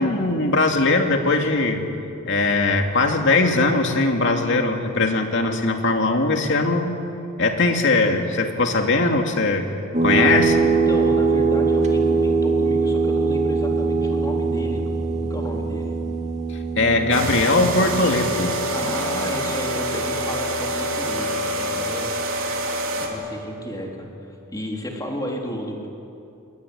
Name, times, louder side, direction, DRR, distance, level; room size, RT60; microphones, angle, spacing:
voice 1, 0.0-1.8 2.2-7.0 7.4-9.7 10.0-10.6 16.8-18.5, left 3 dB, 55° left, 3 dB, 2.6 m, -20 dB
sound 1, 9.9-23.0, right 4 dB, 30° right, 2.6 m, -23 dB
voice 2, 10.1-16.0 18.7-22.1 23.0-25.9, equal, 15° left, 0 dB, 3.6 m, -32 dB
sound 2, 17.1-23.1, right 1 dB, 60° right, 4.0 m, -26 dB
26.0 x 22.0 x 9.9 m, 2.7 s
head